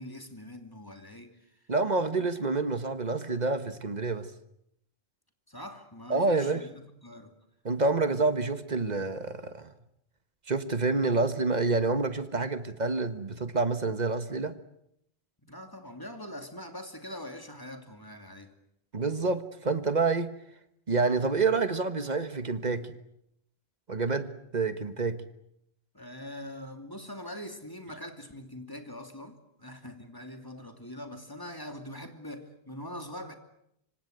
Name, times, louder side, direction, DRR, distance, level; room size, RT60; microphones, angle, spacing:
voice 1, 0.0-1.5 5.5-7.3 15.5-18.5 25.9-33.3, left 1 dB, 20° left, 2.6 m, -43 dB
voice 2, 1.7-4.3 6.1-6.6 7.6-9.7 10.5-14.6 18.9-20.3 20.9-22.9 23.9-25.2, right 3 dB, 40° right, 1.5 m, -28 dB
25.5 x 25.5 x 8.0 m
omnidirectional pair, 1.1 m